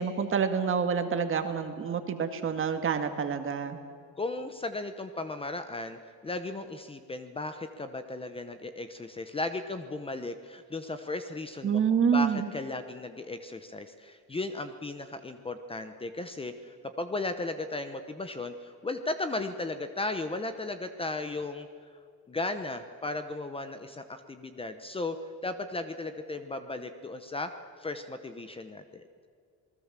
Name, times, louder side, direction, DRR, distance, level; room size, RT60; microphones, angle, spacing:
voice 1, 0.0-3.8 11.6-12.5, right 6 dB, 35° right, 7 dB, 2.0 m, -27 dB
voice 2, 4.2-11.8 12.1-21.7 22.3-25.2 25.4-27.5 27.8-29.0, left 2 dB, 15° left, 9 dB, 0.9 m, -36 dB
27.5 x 20.0 x 7.5 m, 2.2 s
cardioid pair, 165°, 34 cm